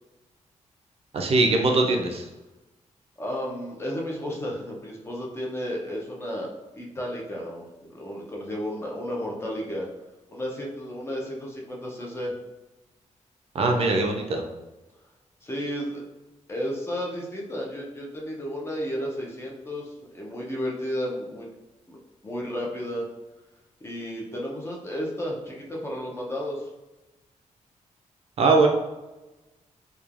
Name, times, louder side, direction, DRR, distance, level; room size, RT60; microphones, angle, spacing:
voice 1, 1.1-2.3 13.5-14.4 28.4-28.7, right 3 dB, 50° right, 2 dB, 0.4 m, -21 dB
voice 2, 3.2-6.5 6.7-9.9 10.3-12.3 15.4-16.0 16.5-21.5 21.9-22.0 22.2-23.1 23.8-26.7, equal, 20° left, -2 dB, 0.5 m, -33 dB
3.0 x 2.2 x 2.4 m, 1.1 s
wide cardioid pair, 145°, 13 cm